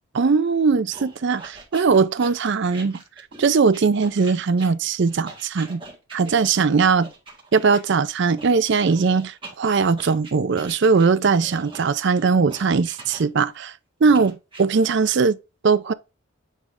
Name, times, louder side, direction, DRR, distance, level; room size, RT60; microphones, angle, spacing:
voice 1, 0.1-3.0 3.4-5.8 6.1-7.1 7.5-13.7 14.0-15.4 15.6-15.9, right 5 dB, 55° right, 0.4 m, -20 dB
sound 1, 0.9-7.8 8.4-13.6 14.1-14.6, right 3 dB, 25° right, 1.9 m, -42 dB
9.0 x 3.2 x 3.6 m
head